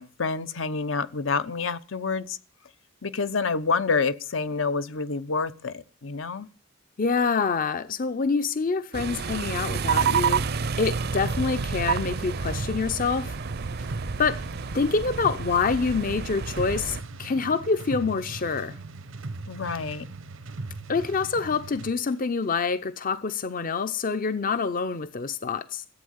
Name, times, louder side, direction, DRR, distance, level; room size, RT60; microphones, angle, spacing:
voice 1, 0.0-2.4 3.0-6.5 19.5-20.1, left 4 dB, 75° left, 0.9 m, -28 dB
voice 2, 7.0-10.4 10.8-13.4 14.2-14.4 14.7-18.8 20.9-25.9, left 4 dB, 45° left, 0.7 m, -26 dB
sound 1, 8.9-17.0, right 6 dB, 55° right, 0.6 m, -29 dB
sound 2, 11.2-22.0, right 3 dB, 90° right, 1.0 m, -39 dB
15.0 x 8.5 x 8.1 m
head